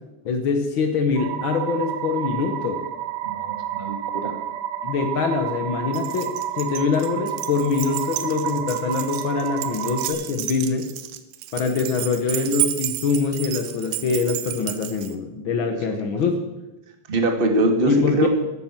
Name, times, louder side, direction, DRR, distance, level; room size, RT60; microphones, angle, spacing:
voice 1, 0.2-2.8 4.8-10.9 11.5-16.4 17.9-18.3, left 5 dB, 75° left, 5 dB, 1.1 m, -24 dB
sound 1, 1.2-10.1, right 11 dB, 70° right, 2.8 m, -30 dB
voice 2, 3.2-4.3 15.7-16.2 17.1-18.3, right 2 dB, 25° right, 4 dB, 1.2 m, -23 dB
Keys jangling, 5.9-15.1, right 13 dB, 90° right, 2.8 m, -31 dB
14.5 x 12.5 x 6.0 m, 1.0 s
omnidirectional pair, 4.2 m